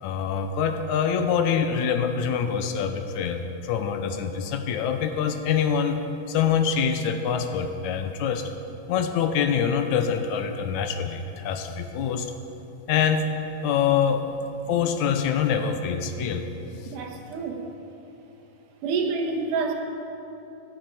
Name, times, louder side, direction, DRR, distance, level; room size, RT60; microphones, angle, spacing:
voice 1, 0.0-6.0 6.3-8.5 8.9-12.3 12.9-13.3 13.6-14.2 14.7-16.4, left 7 dB, 80° left, 7 dB, 2.0 m, -25 dB
voice 2, 16.9-17.7 18.8-19.7, right 4 dB, 80° right, 2 dB, 2.7 m, -28 dB
16.5 x 10.5 x 4.7 m, 2.9 s
omnidirectional pair, 3.6 m